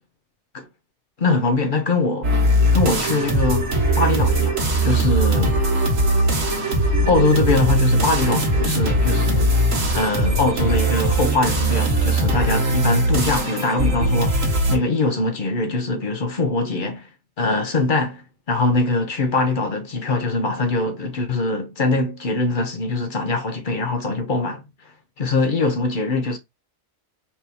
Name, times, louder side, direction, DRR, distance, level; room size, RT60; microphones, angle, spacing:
voice 1, 1.2-2.3 2.7-3.7 3.9-5.6 7.1-9.6 9.9-17.1 17.4-18.2 18.5-24.6 25.2-26.4, left 3 dB, 45° left, 0.9 m, -22 dB
sound 1, 2.2-14.8, right 1 dB, 85° right, 1.9 m, -20 dB
4.5 x 2.9 x 3.4 m
omnidirectional pair, 1.3 m